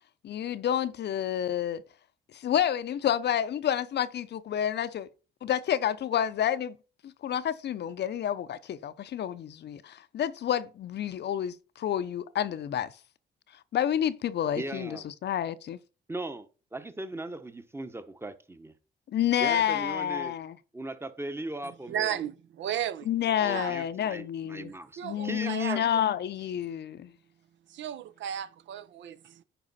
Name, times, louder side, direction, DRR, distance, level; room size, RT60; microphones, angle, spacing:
voice 1, 0.2-1.8 2.3-5.1 5.4-6.8 7.0-12.9 13.7-15.8 19.1-20.6 23.1-24.7 25.0-27.1, left 10 dB, 60° left, 0.6 m, -29 dB
voice 2, 14.5-15.1 16.1-18.7 19.4-20.3 20.7-22.2 23.4-25.8, right 2 dB, 10° right, 1.0 m, -38 dB
voice 3, 21.6-23.1 23.5-23.8 25.0-25.8 27.7-29.4, right 10 dB, 70° right, 0.6 m, -34 dB
10.0 x 4.8 x 4.1 m
cardioid pair, 90°, 20 cm